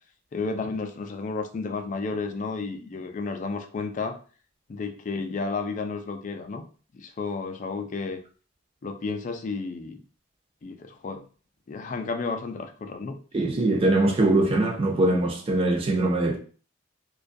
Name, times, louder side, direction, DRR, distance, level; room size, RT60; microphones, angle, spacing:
voice 1, 0.3-4.2 4.7-6.6 6.9-8.2 8.8-10.0 10.6-11.2 11.7-13.1, left 4 dB, 40° left, 0.3 m, -32 dB
voice 2, 13.3-16.4, right 2 dB, 30° right, 0.4 m, -22 dB
2.3 x 2.2 x 2.5 m
head